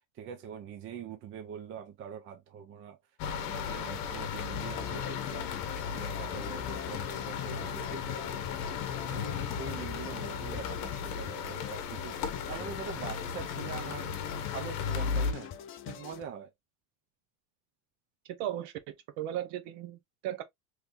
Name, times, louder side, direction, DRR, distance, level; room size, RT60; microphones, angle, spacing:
voice 1, 0.1-3.0 3.3-5.5 5.8-8.5 9.1-14.1 14.5-15.5 15.9-16.5, right 7 dB, 30° right, 0.5 m, -44 dB
sound 1, 3.2-15.3, left 7 dB, 50° left, 0.9 m, -35 dB
sound 2, 4.5-16.2, left 10 dB, 30° left, 0.4 m, -44 dB
voice 2, 18.4-20.4, right 12 dB, 60° right, 0.8 m, -36 dB
3.6 x 3.1 x 2.4 m
cardioid pair, 150°, 45 cm